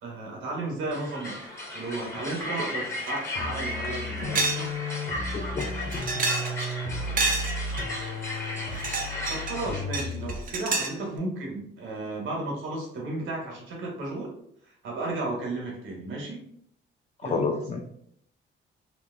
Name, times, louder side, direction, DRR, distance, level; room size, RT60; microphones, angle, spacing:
voice 1, 0.0-1.4 1.7-4.7 9.3-14.3 14.7-16.4 17.2-17.5, right 2 dB, 80° right, -1 dB, 1.3 m, -34 dB
sound 1, 0.9-9.8, left 1 dB, 15° left, 1.0 m, -35 dB
sound 2, 3.1-3.2 3.6-3.7 4.4-4.7 5.0-5.1 5.6-6.7 7.2-7.8 8.6-9.6 9.9-11.0, right 3 dB, 45° right, 0.6 m, -29 dB
sound 3, 3.4-10.5, left 2 dB, 60° left, 0.7 m, -34 dB
voice 2, 5.3-6.0 17.2-17.8, left 4 dB, 35° left, 4 dB, 0.4 m, -30 dB
3.0 x 2.0 x 3.6 m, 0.69 s
cardioid pair, 90°, 20 cm